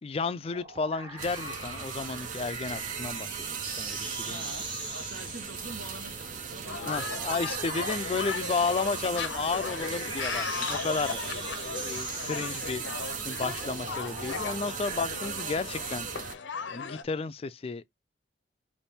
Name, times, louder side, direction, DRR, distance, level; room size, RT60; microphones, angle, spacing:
voice 1, 0.0-4.5 6.9-11.2 11.7-16.1 16.7-17.8, left 4 dB, 30° left, 0.3 m, -33 dB
sound 1, 0.5-15.2, right 2 dB, 25° right, 1.1 m, -42 dB
sound 2, 1.2-16.4, right 7 dB, 45° right, 0.5 m, -38 dB
voice 2, 4.2-6.8 7.8-7.9 14.9-15.2, right 2 dB, 75° right, 1.3 m, -45 dB
sound 3, 6.6-17.0, left 5 dB, 75° left, 0.6 m, -37 dB
4.1 x 2.6 x 3.4 m
head